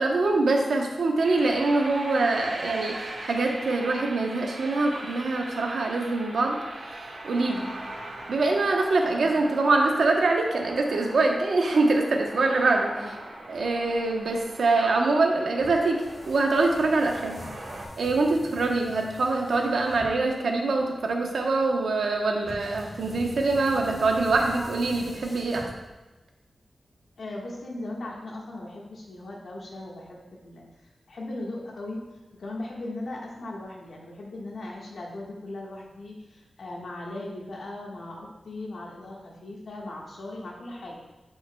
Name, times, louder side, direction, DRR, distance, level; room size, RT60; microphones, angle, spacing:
voice 1, 0.0-6.6 6.9-7.7 8.3-13.0 13.5-17.4 18.0-25.7, right 3 dB, 85° right, 1 dB, 1.0 m, -24 dB
sound 1, 1.2-17.8, right 1 dB, 70° right, 1.7 m, -41 dB
sound 2, 15.6-26.2, left 1 dB, 30° left, 1.7 m, -44 dB
voice 2, 27.2-32.0 32.3-40.9, left 2 dB, 80° left, -2 dB, 1.5 m, -38 dB
11.0 x 5.6 x 2.3 m, 1.1 s
wide cardioid pair, 105°, 0 cm